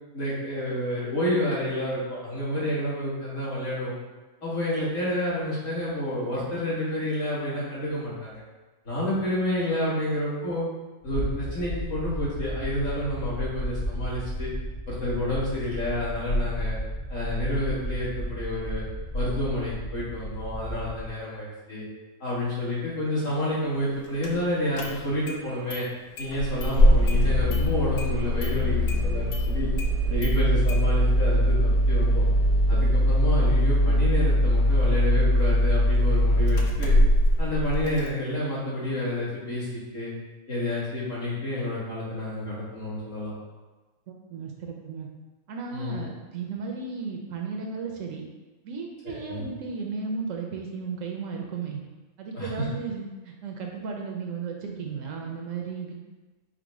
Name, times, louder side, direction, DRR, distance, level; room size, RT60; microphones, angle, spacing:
voice 1, 0.1-4.0 4.4-8.4 8.9-10.7 11.0-14.5 14.9-16.8 17.1-18.8 19.1-21.8 22.2-25.9 26.2-29.7 30.0-32.2 32.7-37.0 37.4-40.1 40.5-43.3 45.7-46.1 49.0-49.5 52.3-52.7, left 1 dB, 65° left, -9 dB, 2.0 m, -29 dB
sound 1, 11.0-21.1, equal, 40° left, 1.4 m, -33 dB
Engine starting, 24.2-24.3 24.8-25.4 25.7-25.8 26.2-38.1, equal, 85° left, 1.1 m, -22 dB
voice 2, 44.3-45.1 45.5-48.2 48.6-51.8 52.2-55.9, right 5 dB, 70° right, 1 dB, 0.9 m, -34 dB
4.8 x 2.1 x 4.6 m, 1.2 s
omnidirectional pair, 1.5 m